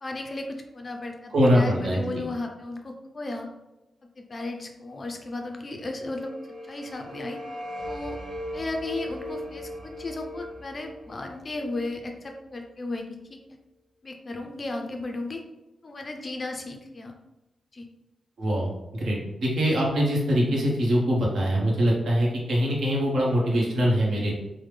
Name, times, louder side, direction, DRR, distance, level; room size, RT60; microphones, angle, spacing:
voice 1, 0.0-3.5 4.2-6.3 6.7-7.4 7.8-8.2 8.5-13.4 14.0-15.4 15.8-17.1 17.7-17.9, left 2 dB, 30° left, 3 dB, 0.3 m, -35 dB
voice 2, 1.3-2.2 18.4-24.3, equal, 70° right, -3 dB, 0.9 m, -23 dB
sound 1, 5.5-12.6, left 1 dB, 15° right, 1.4 m, -39 dB
3.3 x 2.1 x 3.2 m, 1.0 s
wide cardioid pair, 180°, 0 cm